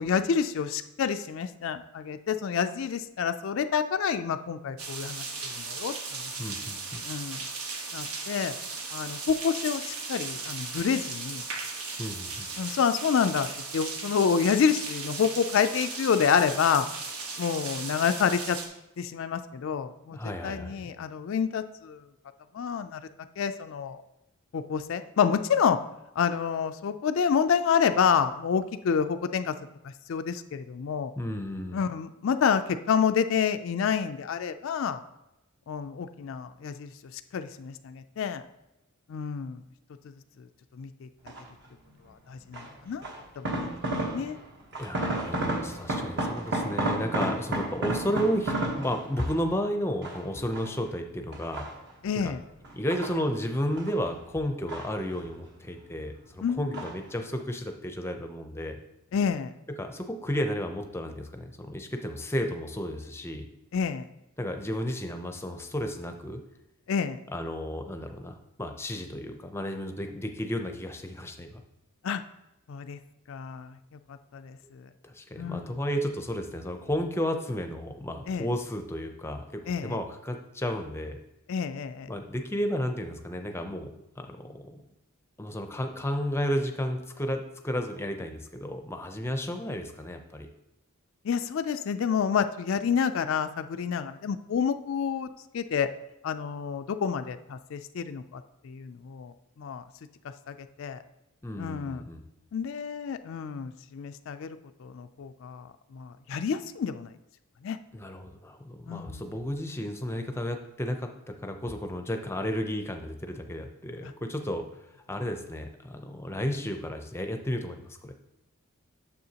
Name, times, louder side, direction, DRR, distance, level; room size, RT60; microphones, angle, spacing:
voice 1, 0.0-6.3 7.1-7.5 7.9-8.5 8.9-11.4 12.6-13.5 13.7-16.9 17.4-18.6 19.0-20.2 20.4-22.0 22.5-23.0 23.4-24.0 24.5-25.8 26.2-29.5 30.1-31.1 31.7-35.0 35.7-38.4 39.1-39.6 40.8-41.1 42.3-44.4 52.0-52.4 56.4-56.8 59.1-59.5 63.7-64.1 66.9-67.2 72.0-72.2 72.7-73.0 73.3-73.8 74.3-74.9 75.4-75.7 78.3-78.5 79.7-80.0 81.5-82.1 91.2-95.3 95.5-95.9 96.2-99.8 100.5-101.0 101.6-102.0 102.5-107.1 107.6-107.8 108.9-109.3, left 7 dB, 60° left, 9 dB, 0.3 m, -28 dB
sound 1, 4.8-18.7, right 4 dB, 85° right, 1.2 m, -37 dB
voice 2, 6.4-7.0 12.0-12.5 20.1-20.9 31.2-31.8 44.8-51.7 52.2-52.3 52.7-58.8 59.8-63.5 64.4-66.4 67.3-71.6 75.0-81.2 82.1-84.6 85.4-90.5 101.4-102.2 107.9-114.7 115.1-118.1, equal, 10° left, 5 dB, 0.5 m, -33 dB
sound 2, 41.3-41.7 42.5-44.4 44.7-49.5 50.0-50.9 51.3-52.1 52.6-54.0 54.3-55.4 55.7-56.3 56.7-57.1 57.4-57.5, right 1 dB, 50° right, 1.2 m, -32 dB
9.3 x 7.0 x 2.8 m, 0.91 s
head